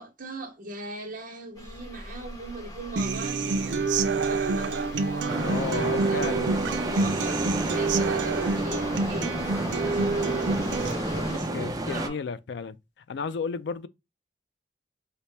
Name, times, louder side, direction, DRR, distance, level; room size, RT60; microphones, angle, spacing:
voice 1, 0.0-6.6 6.8-12.2, right 1 dB, 50° right, 0.9 m, -40 dB
sound 1, 1.5-11.4, left 1 dB, 20° left, 1.0 m, -40 dB
Human voice / Acoustic guitar, 3.0-10.9, right 4 dB, 85° right, 0.5 m, -27 dB
sound 2, 5.3-12.1, right 1 dB, 20° right, 0.5 m, -31 dB
voice 2, 5.4-6.6 11.5-12.8 13.1-13.9, left 5 dB, 70° left, 0.4 m, -32 dB
4.1 x 2.1 x 3.2 m
head